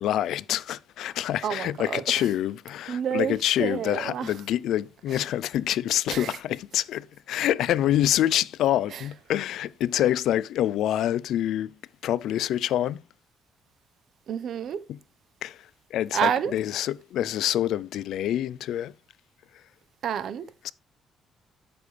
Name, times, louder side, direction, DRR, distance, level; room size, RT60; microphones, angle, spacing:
voice 1, 0.0-11.7 12.0-13.0 14.9-15.0 15.4-15.6 15.9-18.9 20.6-20.7, left 12 dB, 80° left, 0.4 m, -26 dB
voice 2, 1.4-2.2 2.9-4.3 5.1-5.2 6.1-6.4 8.9-9.0 14.3-14.8 16.1-16.5 20.0-20.5, right 8 dB, 65° right, 1.0 m, -29 dB
12.5 x 6.9 x 3.3 m
cardioid pair, 90°, 0 cm